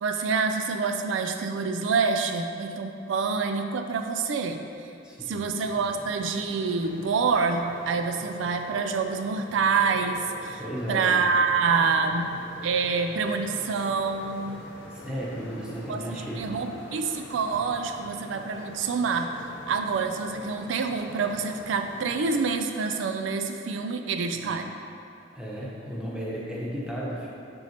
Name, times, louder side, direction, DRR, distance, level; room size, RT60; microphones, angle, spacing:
voice 1, 0.0-4.6 5.3-10.6 10.9-12.3 12.6-14.6 15.9-24.7, right 5 dB, 80° right, 6 dB, 0.3 m, -27 dB
voice 2, 5.0-5.4 10.6-11.2 14.9-16.6 24.3-24.5 25.3-27.3, equal, 5° right, -6 dB, 0.9 m, -34 dB
sound 1, 5.6-22.6, left 1 dB, 75° left, 0.7 m, -45 dB
6.2 x 6.1 x 2.9 m, 2.8 s
head